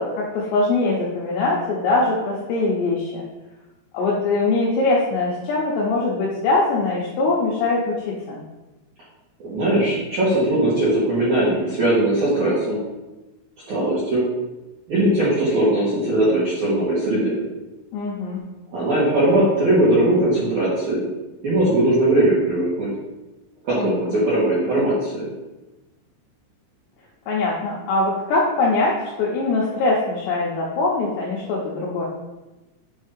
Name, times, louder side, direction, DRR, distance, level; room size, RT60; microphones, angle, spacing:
voice 1, 0.0-3.2 3.9-8.4 17.9-18.4 23.7-24.2 27.3-32.1, left 3 dB, 85° left, -4 dB, 2.4 m, -22 dB
voice 2, 9.4-12.8 13.7-14.3 14.9-17.4 18.7-21.0 21.4-22.9 23.6-25.3, right 1 dB, 70° right, -9 dB, 1.8 m, -19 dB
8.1 x 2.7 x 5.0 m, 1.1 s
omnidirectional pair, 5.8 m